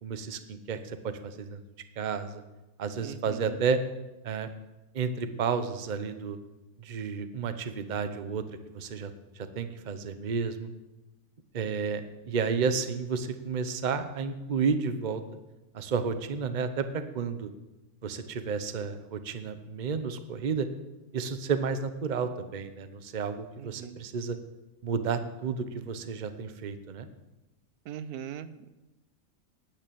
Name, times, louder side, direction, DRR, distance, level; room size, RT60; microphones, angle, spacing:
voice 1, 0.0-1.6 2.0-2.4 2.8-3.8 4.2-4.5 4.9-6.4 6.8-9.1 9.4-10.7 11.5-15.2 15.7-17.5 18.0-20.7 21.1-24.4 24.8-27.1, right 5 dB, 40° right, 10 dB, 0.8 m, -31 dB
voice 2, 3.0-3.6 23.6-24.0 27.9-28.7, right 9 dB, 85° right, 14 dB, 1.2 m, -40 dB
10.0 x 9.0 x 8.5 m, 1.0 s
omnidirectional pair, 1.6 m